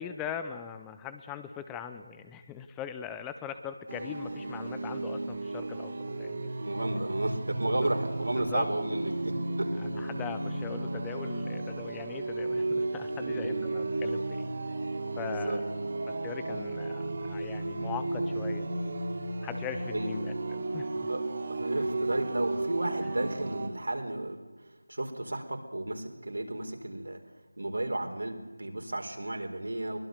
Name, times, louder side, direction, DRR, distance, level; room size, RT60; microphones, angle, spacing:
voice 1, 0.0-6.5 7.8-7.9 8.3-8.7 9.8-14.5 15.2-15.7 16.1-18.6 19.4-21.1, left 8 dB, 10° left, 10 dB, 0.6 m, -41 dB
sound 1, 3.9-23.7, right 2 dB, 45° right, 3.0 m, -34 dB
voice 2, 6.6-9.7 13.2-13.6 15.2-15.6 16.5-16.7 19.9-20.1 21.1-21.2 21.5-27.2 27.6-30.0, right 1 dB, 70° right, 4 dB, 4.4 m, -33 dB
23.5 x 19.0 x 6.8 m, 1.2 s
figure-of-eight pair, 170°, 0 cm